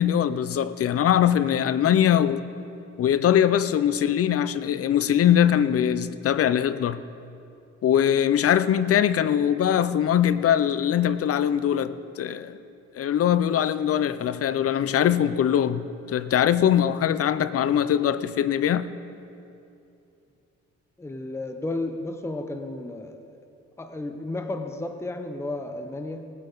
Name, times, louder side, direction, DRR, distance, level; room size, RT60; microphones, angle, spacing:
voice 1, 0.0-2.5 3.0-7.0 7.8-12.6 13.0-18.9, left 9 dB, 50° left, 0.6 m, -22 dB
voice 2, 21.0-23.4 23.8-26.3, left 2 dB, 10° left, 0.7 m, -33 dB
19.0 x 9.1 x 3.9 m
cardioid pair, 90°, 30 cm